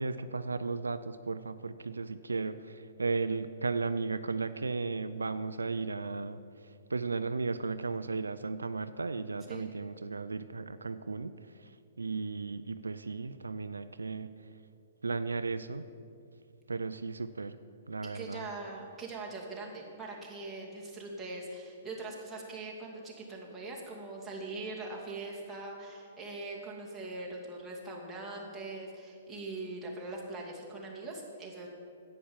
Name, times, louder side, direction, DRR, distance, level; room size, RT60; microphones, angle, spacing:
voice 1, 0.0-6.4 6.9-11.3 11.6-11.7 12.0-14.3 15.0-15.9 16.7-17.6 17.9-18.5, right 4 dB, 85° right, 12 dB, 0.4 m, -35 dB
voice 2, 18.1-31.7, right 2 dB, 10° right, -4 dB, 2.4 m, -42 dB
10.0 x 8.6 x 7.2 m, 2.5 s
hypercardioid pair, 120°, 0 cm